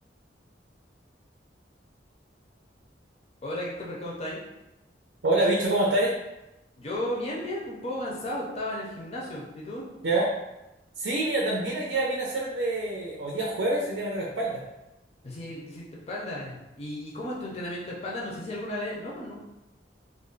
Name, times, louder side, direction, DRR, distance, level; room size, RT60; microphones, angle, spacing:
voice 1, 3.4-4.4 6.8-9.8 15.2-19.4, left 1 dB, 35° left, -4 dB, 0.5 m, -34 dB
voice 2, 5.2-6.1 10.0-10.3 11.0-14.6, right 2 dB, 85° right, -3 dB, 0.5 m, -26 dB
2.4 x 2.0 x 3.7 m, 0.95 s
head